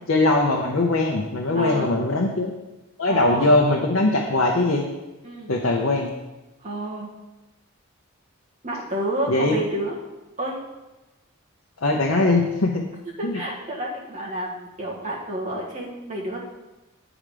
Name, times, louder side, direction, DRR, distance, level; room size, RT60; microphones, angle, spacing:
voice 1, 0.1-2.5 3.0-4.9 5.5-6.1 9.3-9.6 11.8-12.8 13.2-13.4, left 2 dB, 65° left, -1 dB, 0.8 m, -21 dB
voice 2, 1.5-1.9 3.1-3.6 5.2-5.5 6.6-7.1 8.6-10.0 10.4-10.6 13.2-16.4, right 1 dB, 35° right, -4 dB, 1.6 m, -29 dB
8.8 x 4.9 x 5.0 m, 1.1 s
head